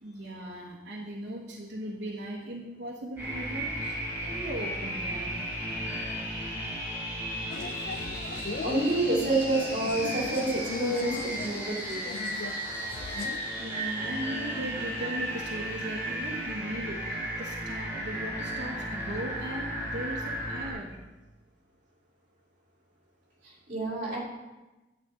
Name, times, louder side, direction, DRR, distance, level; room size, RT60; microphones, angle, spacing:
voice 1, 0.0-5.3 13.6-21.0, right 1 dB, 80° right, -5 dB, 1.4 m, -38 dB
sound 1, 3.2-20.7, right 1 dB, 15° right, 3.6 m, -34 dB
sound 2, 7.5-13.4, left 4 dB, 55° left, 0.3 m, -39 dB
voice 2, 8.3-12.1 23.4-24.2, right 2 dB, 45° right, -4 dB, 2.6 m, -29 dB
10.5 x 8.3 x 3.8 m, 1.1 s
head